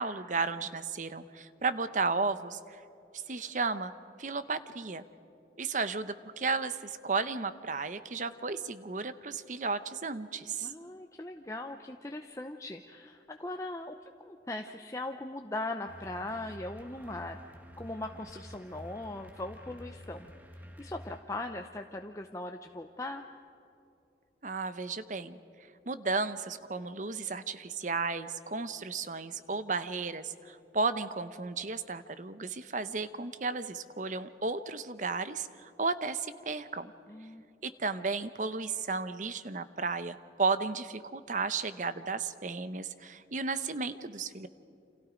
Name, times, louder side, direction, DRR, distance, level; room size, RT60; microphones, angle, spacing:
voice 1, 0.0-2.8 3.1-3.9 4.2-5.0 5.6-10.7 24.4-25.4 25.9-36.9 37.6-44.5, right 4 dB, 45° right, 12 dB, 0.8 m, -34 dB
voice 2, 10.6-14.0 14.2-17.4 17.8-20.3 20.8-23.2 37.1-37.5 38.0-38.1, left 2 dB, 20° left, 4 dB, 0.7 m, -39 dB
sound 1, 15.9-21.2, equal, 10° right, 1.5 m, -49 dB
29.0 x 27.0 x 5.1 m, 2.7 s
head